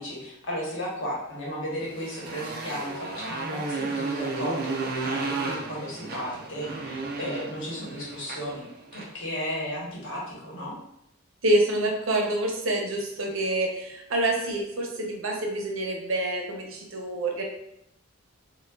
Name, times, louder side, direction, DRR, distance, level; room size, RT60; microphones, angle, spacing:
voice 1, 0.0-8.7 8.9-10.8, equal, 60° left, -4 dB, 1.0 m, -34 dB
Motorcycle, 1.8-9.2, right 3 dB, 45° right, 0.4 m, -33 dB
voice 2, 11.4-17.4, right 1 dB, 70° right, 0 dB, 0.7 m, -27 dB
4.6 x 2.2 x 2.4 m, 0.79 s
head